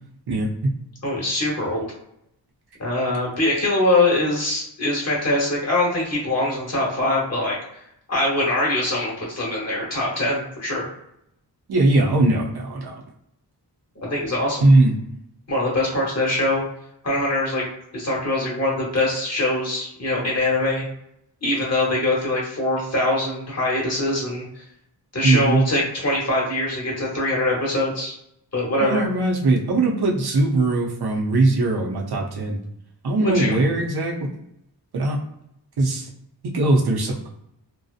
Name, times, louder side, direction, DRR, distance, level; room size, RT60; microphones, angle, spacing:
voice 1, 0.3-0.7 11.7-13.0 14.6-14.9 25.2-25.6 28.8-32.6 33.0-34.3 34.9-35.2 35.8-36.1 36.4-37.3, right 2 dB, 60° right, -1 dB, 0.6 m, -20 dB
voice 2, 1.0-1.9 2.8-7.6 8.1-10.9 14.0-14.6 15.5-16.6 17.0-17.7 17.9-20.8 21.4-24.4 25.1-28.1 28.5-29.0 33.2-33.6, left 2 dB, 35° left, -4 dB, 0.9 m, -23 dB
2.6 x 2.0 x 2.4 m, 0.76 s
wide cardioid pair, 140°, 43 cm